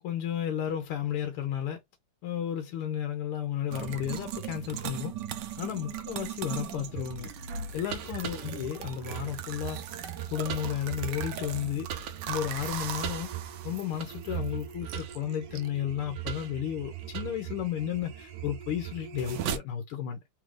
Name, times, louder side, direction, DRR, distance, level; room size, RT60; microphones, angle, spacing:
voice 1, 0.0-1.8 2.2-5.2 5.6-7.3 7.7-9.9 10.3-11.9 12.3-13.4 13.6-20.2, left 10 dB, 85° left, 1.7 m, -33 dB
sound 1, 3.7-19.6, right 9 dB, 75° right, 1.0 m, -37 dB
3.9 x 2.5 x 3.2 m
omnidirectional pair, 2.4 m